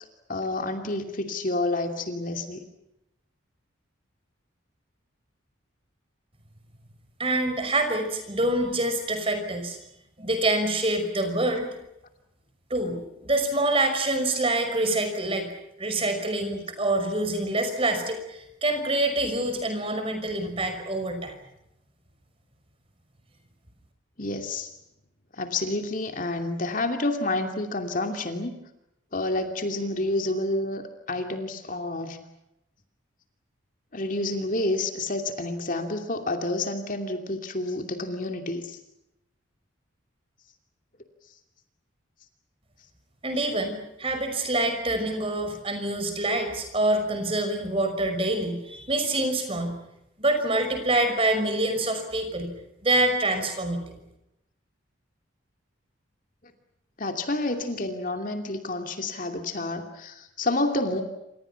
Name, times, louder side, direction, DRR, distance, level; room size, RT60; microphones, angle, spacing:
voice 1, 0.3-2.6 24.2-24.7 25.3-28.6 29.1-32.2 33.9-38.8 57.0-61.0, left 2 dB, 40° left, 6 dB, 2.7 m, -29 dB
voice 2, 7.2-9.8 10.2-11.7 12.7-15.5 15.8-21.3 43.2-49.7 50.2-52.5 52.8-53.9, right 2 dB, 25° right, 6 dB, 5.7 m, -26 dB
28.5 x 27.5 x 5.9 m, 0.85 s
head